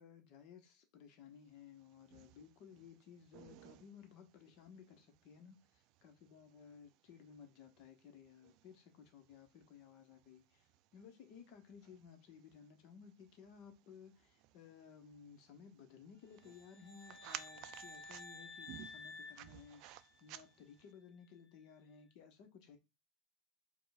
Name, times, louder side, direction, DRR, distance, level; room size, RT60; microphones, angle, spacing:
voice 1, 0.0-22.8, left 7 dB, 55° left, 1.1 m, -58 dB
sound 1, 1.5-20.9, right 14 dB, 55° right, 0.3 m, -58 dB
sound 2, 16.3-20.4, left 3 dB, 20° left, 2.0 m, -53 dB
4.7 x 2.4 x 4.1 m
supercardioid pair, 130°, 0 cm